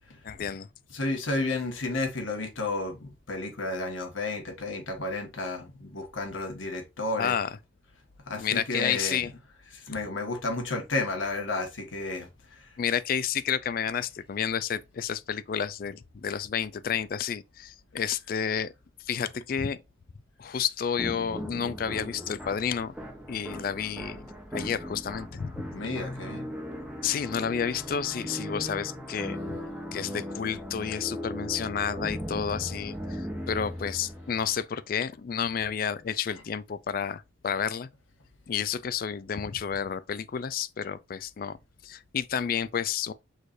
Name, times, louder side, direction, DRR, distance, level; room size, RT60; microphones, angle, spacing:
voice 1, 0.2-0.7 7.2-7.5 8.4-9.3 12.8-18.7 19.1-19.8 20.4-22.9 23.3-24.2 24.5-25.6 27.0-29.4 29.9-37.9 38.5-41.6 41.8-43.1, left 7 dB, 50° left, 0.3 m, -30 dB
voice 2, 0.9-7.3 8.3-9.3 9.7-12.7 25.7-26.5, left 2 dB, 90° left, 1.4 m, -32 dB
sound 1, 21.0-34.6, equal, 5° right, 0.8 m, -38 dB
6.3 x 3.2 x 2.5 m
head